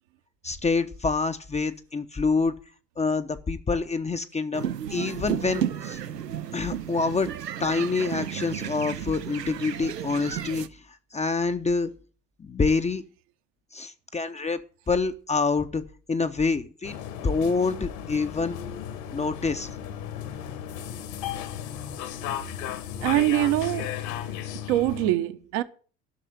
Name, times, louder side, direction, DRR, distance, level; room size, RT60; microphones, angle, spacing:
voice 1, 0.4-2.5 3.0-6.0 6.5-7.3 7.6-10.7 11.1-11.9 12.4-13.0 13.7-15.8 16.1-18.6 19.1-19.7, left 4 dB, 15° left, 0.8 m, -26 dB
sound 1, 4.5-10.7, right 10 dB, 80° right, 0.8 m, -33 dB
sound 2, 16.8-25.1, left 9 dB, 55° left, 1.8 m, -35 dB
voice 2, 23.0-24.0 24.5-25.6, right 15 dB, 55° right, 1.1 m, -24 dB
11.5 x 6.6 x 9.5 m
figure-of-eight pair, 65°, 48 cm